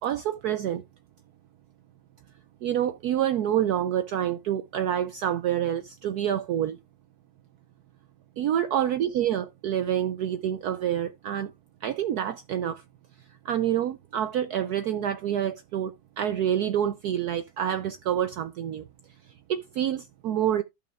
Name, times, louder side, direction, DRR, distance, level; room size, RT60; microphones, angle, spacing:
voice 1, 0.0-0.8 2.6-6.8 8.4-11.5 11.8-12.8 13.4-18.9 19.5-20.6, right 10 dB, 75° right, 0.8 m, -27 dB
14.0 x 5.8 x 2.3 m
omnidirectional pair, 2.2 m